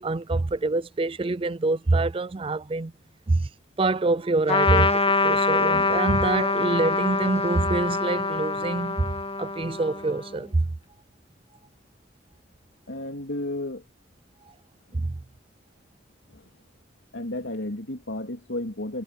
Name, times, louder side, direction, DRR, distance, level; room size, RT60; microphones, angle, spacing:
voice 1, 0.0-2.9 3.3-3.5 3.8-9.1 9.4-10.7 14.9-15.2, right 2 dB, 30° right, 0.5 m, -25 dB
Trumpet, 4.5-10.3, left 3 dB, 30° left, 1.8 m, -25 dB
voice 2, 12.9-13.8 16.3-16.5 17.1-19.0, left 1 dB, 80° left, 3.4 m, -32 dB
head